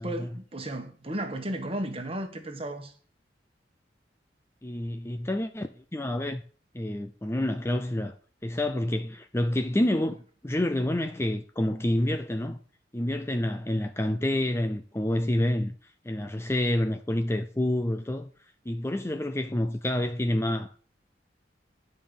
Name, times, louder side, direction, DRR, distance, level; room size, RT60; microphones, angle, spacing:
voice 1, 0.0-2.9, right 1 dB, 30° right, 1.5 m, -34 dB
voice 2, 4.6-6.4 6.7-8.1 8.4-10.2 10.4-12.6 12.9-18.3 18.7-20.7, left 1 dB, 15° left, 0.5 m, -28 dB
9.9 x 5.4 x 7.1 m
head